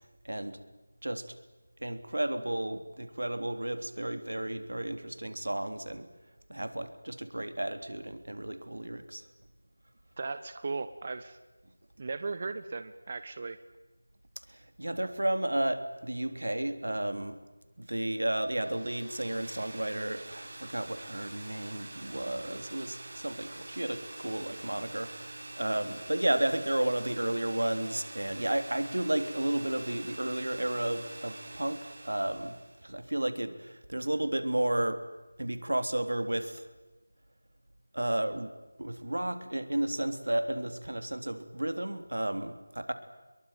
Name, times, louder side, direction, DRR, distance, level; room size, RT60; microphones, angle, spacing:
voice 1, 0.2-0.6 1.0-1.3 1.8-6.1 6.5-9.2 14.5-17.4 17.8-32.5 32.8-35.0 35.4-36.6 37.9-38.5 38.8-42.9, right 1 dB, 90° right, 9 dB, 3.5 m, -32 dB
voice 2, 10.2-11.4 12.0-13.6, right 3 dB, 35° right, 11 dB, 1.1 m, -37 dB
sound 1, 18.4-32.9, right 2 dB, 55° right, 4.9 m, -46 dB
24.0 x 22.5 x 9.3 m, 1.2 s
figure-of-eight pair, 175°, 0 cm